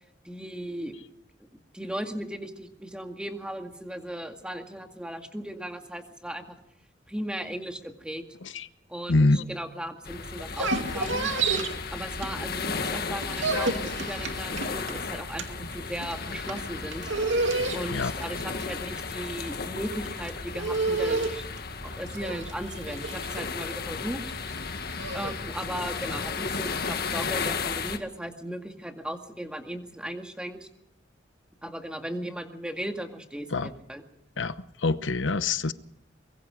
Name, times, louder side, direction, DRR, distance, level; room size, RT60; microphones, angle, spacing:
voice 1, 0.2-1.0 1.4-1.5 1.7-6.6 7.1-8.2 8.9-11.3 11.9-17.1 17.7-21.5 21.8-24.3 25.1-30.7 31.6-34.0, right 1 dB, 5° right, 5 dB, 2.0 m, -37 dB
voice 2, 9.1-9.4 17.9-18.1 33.5-33.7 34.4-34.5 34.8-35.7, left 3 dB, 85° left, 13 dB, 1.0 m, -24 dB
sound 1, 10.0-28.0, left 5 dB, 60° left, 1.7 m, -34 dB
sound 2, 10.4-12.7 13.0-25.3, right 3 dB, 85° right, 2.4 m, -31 dB
24.0 x 22.0 x 5.0 m, 0.85 s
head